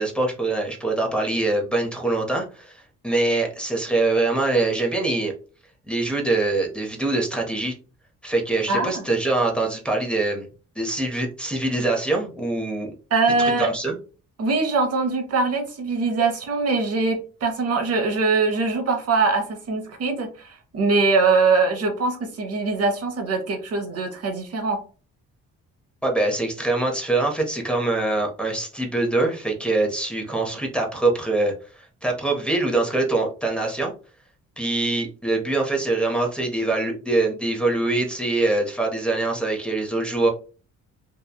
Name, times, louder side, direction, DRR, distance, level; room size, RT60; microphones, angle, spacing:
voice 1, 0.0-5.3 5.9-7.7 8.2-10.5 10.8-12.9 13.6-13.9 26.0-33.9 34.6-40.3, right 2 dB, 5° left, -1 dB, 0.7 m, -24 dB
voice 2, 8.7-9.0 13.1-13.7 14.4-24.8, right 3 dB, 55° right, 5 dB, 0.7 m, -22 dB
2.9 x 2.2 x 2.2 m, 0.36 s
cardioid pair, 90°, 30 cm